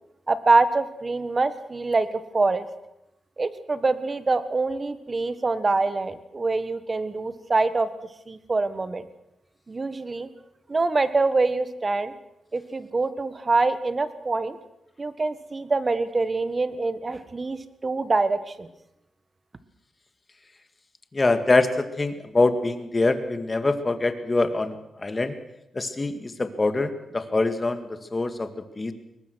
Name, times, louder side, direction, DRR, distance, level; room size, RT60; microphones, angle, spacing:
voice 1, 0.3-2.7 3.4-7.9 8.3-9.0 9.7-10.3 10.7-12.1 12.5-14.6 15.0-18.7, right 3 dB, 30° right, 12 dB, 1.5 m, -25 dB
voice 2, 21.1-25.4 25.7-28.9, left 2 dB, 25° left, 9 dB, 2.0 m, -24 dB
22.5 x 19.5 x 6.4 m, 0.86 s
cardioid pair, 95°, 0 cm